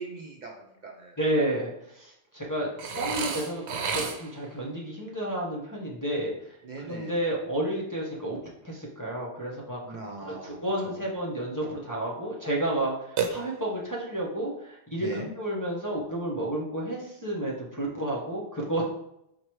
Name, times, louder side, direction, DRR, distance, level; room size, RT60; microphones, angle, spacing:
voice 1, 0.0-1.2 6.6-7.1 9.8-10.6 10.8-11.0 15.0-15.3, right 3 dB, 50° right, 0 dB, 0.7 m, -40 dB
voice 2, 1.2-8.4 8.6-10.0 10.3-18.8, right 1 dB, 20° left, -3 dB, 0.7 m, -31 dB
Burping eructation, 2.8-4.5 13.2-13.9, right 5 dB, 80° right, 0.9 m, -31 dB
4.7 x 2.2 x 4.5 m, 0.79 s
omnidirectional pair, 1.1 m